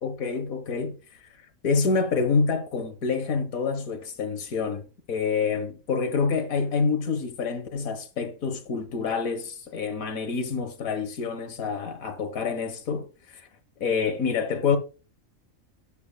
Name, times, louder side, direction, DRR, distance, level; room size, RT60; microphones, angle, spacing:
voice 1, 0.0-0.9 1.6-13.5 13.8-14.8, left 5 dB, 85° left, 1.7 m, -27 dB
11.5 x 7.3 x 2.3 m
omnidirectional pair, 1.4 m